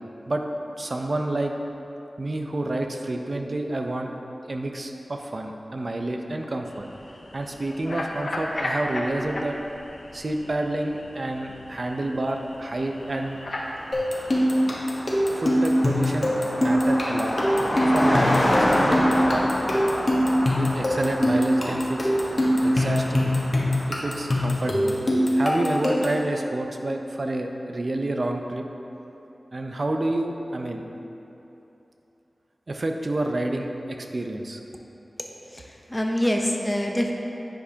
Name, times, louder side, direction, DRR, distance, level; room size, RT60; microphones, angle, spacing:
voice 1, 0.8-1.5 2.2-4.1 4.5-6.9 7.3-9.6 10.1-13.4 15.3-17.4 17.9-19.5 20.6-22.1 22.6-23.3 23.9-25.0 25.4-28.7 29.5-30.8 32.7-34.6, right 1 dB, 55° right, 3 dB, 0.5 m, -29 dB
sound 1, 6.6-14.5, left 1 dB, 75° left, 0.7 m, -36 dB
Car passing by, 13.1-13.2 13.4-24.5, left 1 dB, 35° left, 1.1 m, -28 dB
sound 2, 13.9-26.2, equal, 60° left, 1.1 m, -23 dB
voice 2, 35.5-37.1, equal, 15° left, 0 dB, 0.7 m, -25 dB
10.0 x 5.0 x 2.8 m, 2.9 s
cardioid pair, 45°, 0 cm